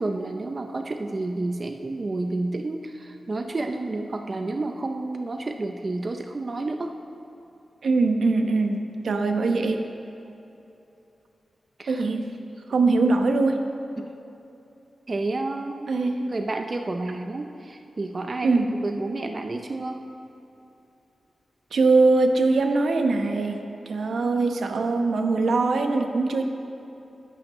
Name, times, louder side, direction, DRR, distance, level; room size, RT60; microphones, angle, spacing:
voice 1, 0.0-7.0 11.8-12.0 14.0-14.1 15.1-20.0, right 2 dB, 35° right, 5 dB, 0.5 m, -30 dB
voice 2, 7.8-9.8 11.9-12.3 12.7-13.7 15.9-16.2 18.4-18.7 21.7-23.6 23.9-26.4, right 3 dB, 80° right, 4 dB, 1.0 m, -22 dB
21.0 x 11.0 x 3.1 m, 2.9 s
wide cardioid pair, 175°, 0 cm